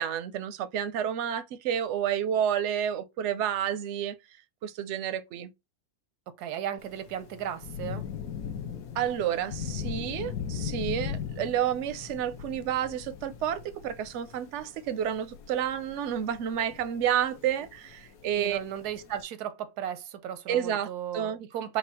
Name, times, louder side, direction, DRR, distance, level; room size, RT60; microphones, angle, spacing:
voice 1, 0.0-4.2 4.6-5.5 9.0-18.6 20.5-21.4, right 9 dB, 65° right, 0.7 m, -30 dB
voice 2, 6.4-8.0 18.3-21.8, right 10 dB, 85° right, 1.2 m, -35 dB
Thunder / Rain, 6.8-19.2, left 8 dB, 70° left, 1.1 m, -39 dB
4.3 x 2.2 x 4.2 m
omnidirectional pair, 1.6 m